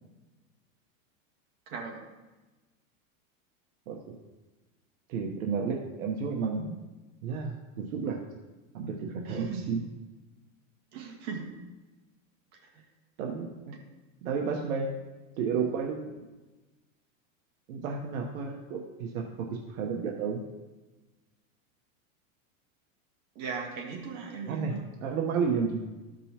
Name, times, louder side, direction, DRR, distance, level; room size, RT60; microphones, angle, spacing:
voice 1, 1.7-2.0 9.3-9.6 10.9-11.5 12.5-12.6 13.7-13.8 23.4-24.8, right 5 dB, 45° right, 0 dB, 1.8 m, -37 dB
voice 2, 3.9-4.2 5.1-6.7 7.2-8.2 8.7-9.8 13.2-13.5 14.2-15.0 15.4-16.1 17.7-20.4 24.5-25.9, right 5 dB, 75° right, 1 dB, 1.1 m, -32 dB
13.5 x 5.3 x 2.9 m, 1.2 s
supercardioid pair, 145°, 42 cm